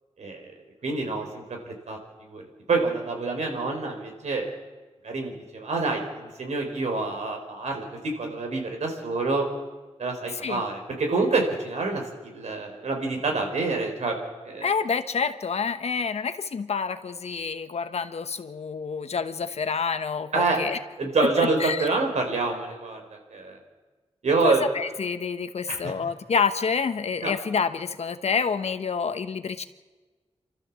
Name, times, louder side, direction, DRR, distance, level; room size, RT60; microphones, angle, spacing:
voice 1, 0.8-2.4 2.7-4.4 5.0-9.5 10.0-14.1 14.4-14.7 20.3-20.6 21.0-23.6 24.2-24.7 25.7-25.9 27.2-27.3, right 3 dB, 85° right, 2 dB, 4.4 m, -27 dB
voice 2, 14.6-20.8 21.2-21.3 21.6-21.9 24.4-29.6, left 5 dB, 70° left, 10 dB, 1.1 m, -28 dB
28.0 x 13.5 x 7.4 m, 1.3 s
wide cardioid pair, 130°, 11 cm